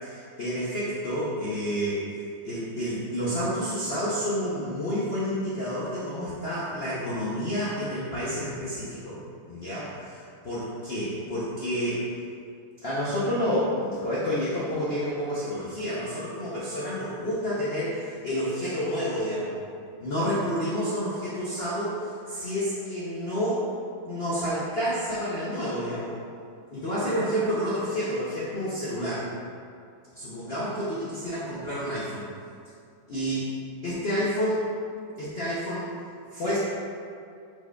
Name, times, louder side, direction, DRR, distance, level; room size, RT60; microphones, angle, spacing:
voice 1, 0.0-2.0 2.4-9.2 9.5-12.0 12.8-19.6 20.0-23.7 24.1-26.2 26.7-29.3 30.2-32.2 33.1-33.6 33.8-34.7 35.2-35.9 36.3-36.6, equal, 85° left, -10 dB, 0.5 m, -29 dB
4.7 x 4.4 x 2.3 m, 2.3 s
omnidirectional pair, 2.1 m